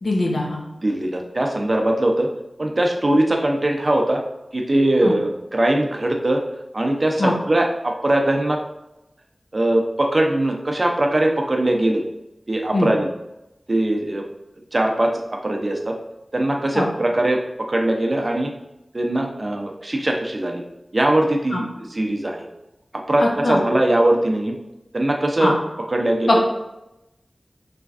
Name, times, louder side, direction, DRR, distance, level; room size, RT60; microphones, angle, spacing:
voice 1, 0.0-0.6 5.0-5.1 7.2-7.3 12.7-12.9 16.7-16.9 21.5-21.6 23.2-23.6 25.4-25.5 26.3-26.4, left 2 dB, 80° left, 0 dB, 0.6 m, -21 dB
voice 2, 0.8-2.3 2.6-4.2 4.5-6.4 6.7-8.6 9.5-12.0 12.5-13.1 13.7-14.2 14.7-15.9 16.3-18.5 18.9-20.6 20.9-22.5 22.9-24.6 24.9-25.5 25.9-26.4, right 1 dB, 45° right, 2 dB, 0.5 m, -21 dB
3.3 x 3.1 x 2.5 m, 0.92 s
cardioid pair, 40°, 0 cm